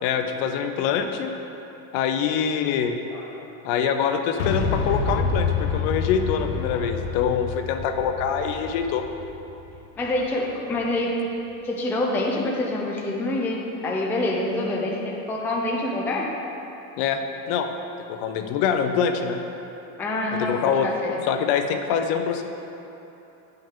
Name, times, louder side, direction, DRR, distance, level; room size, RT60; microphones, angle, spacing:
voice 1, 0.0-1.3 1.9-3.0 3.6-9.0 17.0-17.2 17.5-17.7 18.1-19.4 20.4-20.9 21.2-22.4, left 7 dB, 55° left, 6 dB, 0.6 m, -24 dB
voice 2, 3.1-3.4 6.7-6.8 10.0-11.2 11.6-16.4 20.0-21.2, left 2 dB, 5° left, -2 dB, 0.4 m, -26 dB
Boom, 4.4-10.3, left 5 dB, 80° left, 0.9 m, -28 dB
8.9 x 5.5 x 3.6 m, 3.0 s
supercardioid pair, 140°, 41 cm